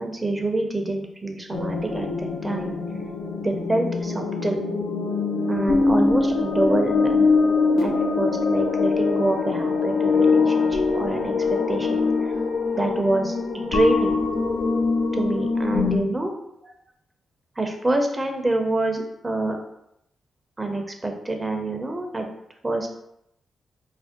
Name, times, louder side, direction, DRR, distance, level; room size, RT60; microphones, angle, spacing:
voice 1, 0.0-2.8 3.4-4.7 5.5-7.4 7.8-11.3 11.7-12.1 12.7-14.2 15.1-16.3 16.6-16.7 17.6-19.6 20.6-22.3 22.6-22.9, right 2 dB, 25° right, 3 dB, 0.5 m, -26 dB
sound 1, 1.5-16.0, left 4 dB, 75° left, 0.4 m, -23 dB
2.6 x 2.1 x 3.6 m, 0.78 s
supercardioid pair, 45°, 0 cm